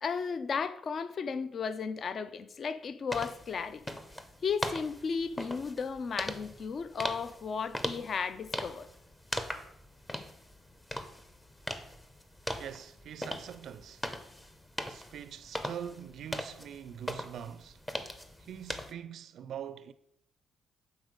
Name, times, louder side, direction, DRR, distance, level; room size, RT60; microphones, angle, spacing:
voice 1, 0.0-3.8 4.4-8.9, left 5 dB, 50° left, 0.4 m, -34 dB
sound 1, 3.1-18.9, left 1 dB, 15° left, 0.7 m, -40 dB
voice 2, 12.6-14.0 14.9-17.8 18.4-19.9, right 9 dB, 70° right, 0.4 m, -43 dB
7.9 x 4.0 x 5.0 m
cardioid pair, 90°, 0 cm